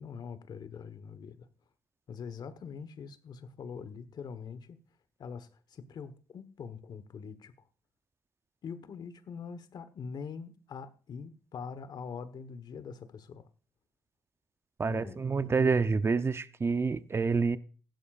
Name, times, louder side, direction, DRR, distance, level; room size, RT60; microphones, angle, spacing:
voice 1, 0.0-1.5 2.1-4.8 5.2-7.5 8.6-13.4 14.9-15.2, left 6 dB, 60° left, 1.2 m, -43 dB
voice 2, 14.8-17.6, right 4 dB, 30° right, 0.7 m, -28 dB
15.5 x 11.5 x 2.5 m
supercardioid pair, 65°, 8 cm